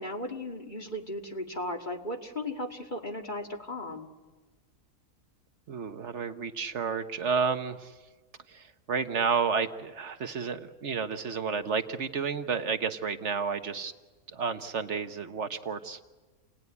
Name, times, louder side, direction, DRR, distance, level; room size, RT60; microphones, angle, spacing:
voice 1, 0.0-4.1, left 1 dB, 30° left, 2 dB, 2.2 m, -36 dB
voice 2, 5.7-7.9 8.5-13.9 14.3-16.0, right 5 dB, 55° right, 8 dB, 1.3 m, -31 dB
29.0 x 18.5 x 9.6 m, 1.3 s
omnidirectional pair, 1.5 m